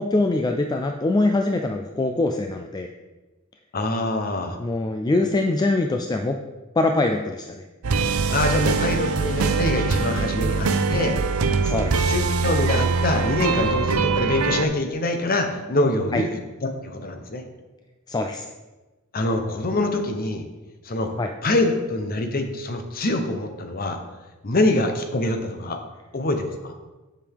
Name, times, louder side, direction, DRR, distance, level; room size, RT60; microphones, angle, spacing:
voice 1, 0.0-2.9 4.6-6.4 6.8-7.6 11.6-12.1 16.1-16.2 18.1-18.5 21.2-21.3, left 2 dB, 20° left, 4 dB, 0.3 m, -23 dB
voice 2, 3.7-4.6 8.3-11.2 11.9-16.3 16.8-17.4 19.1-20.4 20.8-21.1 21.4-24.0 24.4-25.8 26.1-26.7, left 2 dB, 45° left, 6 dB, 0.8 m, -24 dB
sound 1, 7.8-14.7, right 4 dB, 85° right, 0.6 m, -23 dB
7.5 x 6.9 x 3.5 m, 1.1 s
head